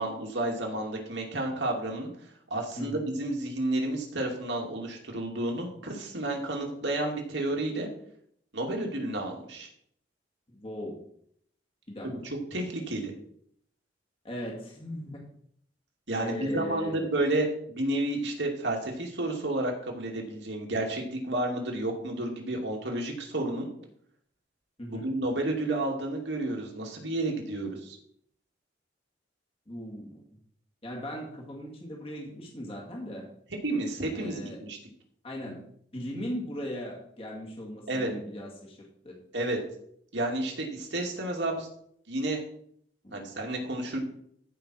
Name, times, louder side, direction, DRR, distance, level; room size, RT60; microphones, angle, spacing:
voice 1, 0.0-2.1 2.5-7.9 8.5-9.7 12.0-12.1 12.5-13.1 16.1-23.7 24.9-28.0 33.6-34.8 37.9-38.1 39.3-39.6 40.1-41.7 42.1-42.4 43.1-44.1, right 1 dB, 75° right, 0 dB, 2.5 m, -31 dB
voice 2, 10.5-11.0 11.9-12.1 14.2-15.2 16.2-17.1 24.8-25.1 29.7-30.2 30.8-33.3 34.1-34.6 35.2-35.6 35.9-39.2 43.0-43.3, equal, 30° left, -2 dB, 2.1 m, -38 dB
14.5 x 5.6 x 4.5 m, 0.66 s
head